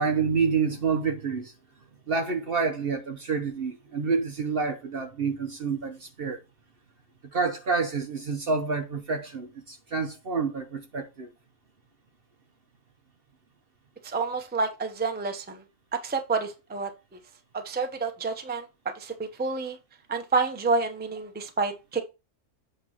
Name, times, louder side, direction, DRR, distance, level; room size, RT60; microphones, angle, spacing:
voice 1, 0.0-1.5 2.1-6.4 7.3-11.3, right 5 dB, 45° right, 0.9 m, -28 dB
voice 2, 14.0-15.6 15.9-16.9 17.5-19.8 20.1-22.0, right 4 dB, 10° right, 0.7 m, -29 dB
8.2 x 3.1 x 5.6 m
omnidirectional pair, 1.5 m